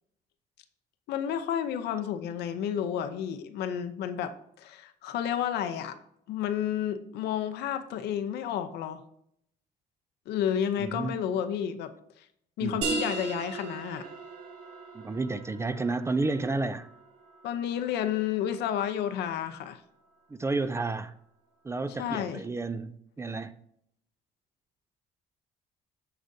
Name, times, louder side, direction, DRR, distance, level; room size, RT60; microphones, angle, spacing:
voice 1, 1.1-6.0 6.3-9.0 10.3-11.9 12.2-12.3 12.6-14.1 17.4-19.8 22.0-22.4, left 9 dB, 80° left, 0.7 m, -31 dB
voice 2, 10.8-11.2 12.6-12.8 14.9-16.9 20.3-21.1 21.6-23.6, right 3 dB, 15° right, 0.4 m, -31 dB
sound 1, 12.8-18.2, right 3 dB, 80° right, 2.1 m, -37 dB
14.0 x 5.0 x 2.7 m
cardioid pair, 110°, 17 cm